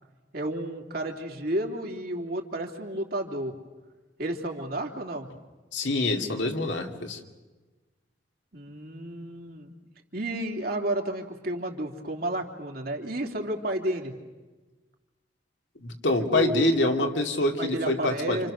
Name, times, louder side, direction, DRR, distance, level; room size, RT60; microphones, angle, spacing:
voice 1, 0.3-3.5 4.2-5.3 8.5-9.7 10.1-14.1 16.3-17.1 17.6-18.5, right 1 dB, 55° right, 2 dB, 3.0 m, -31 dB
voice 2, 5.7-7.2 15.8-18.5, left 2 dB, 85° left, 3 dB, 2.6 m, -26 dB
29.0 x 27.5 x 6.6 m, 1.2 s
head